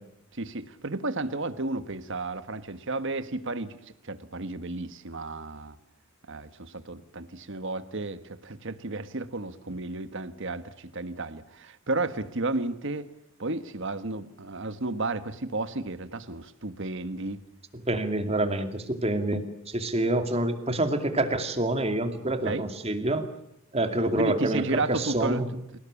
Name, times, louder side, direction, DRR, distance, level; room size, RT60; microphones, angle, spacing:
voice 1, 0.3-5.8 6.3-13.1 13.4-17.4 22.4-22.6 24.2-25.8, right 2 dB, 55° right, 12 dB, 1.5 m, -33 dB
voice 2, 17.9-23.3 23.7-25.5, right 1 dB, 30° right, 8 dB, 2.4 m, -27 dB
28.0 x 18.0 x 8.6 m, 0.81 s
head